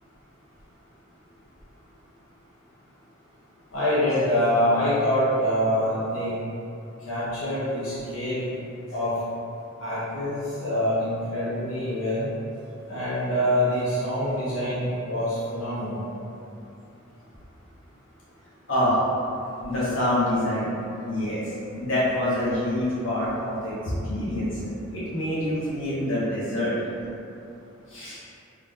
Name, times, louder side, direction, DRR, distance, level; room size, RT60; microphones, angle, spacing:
voice 1, 3.7-6.3 7.1-8.4 8.9-9.1 9.8-12.3 12.9-16.0 23.9-24.0, equal, 90° left, -11 dB, 0.9 m, -25 dB
voice 2, 19.6-20.7 21.0-21.4 21.7-23.8 24.0-26.7 27.9-28.2, left 1 dB, 65° left, -9 dB, 1.1 m, -26 dB
3.4 x 2.3 x 3.6 m, 2.7 s
head